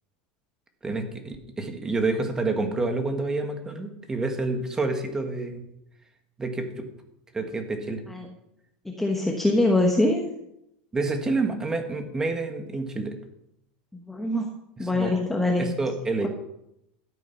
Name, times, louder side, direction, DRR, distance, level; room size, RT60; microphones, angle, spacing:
voice 1, 0.8-5.6 6.4-6.9 7.3-8.0 10.9-13.2 14.8-15.2 15.6-16.3, right 3 dB, 10° right, 5 dB, 1.6 m, -28 dB
voice 2, 8.8-10.2 13.9-14.5 14.8-15.7, left 2 dB, 5° left, 1 dB, 1.1 m, -23 dB
12.5 x 8.4 x 5.9 m, 0.81 s
supercardioid pair, 160°, 5 cm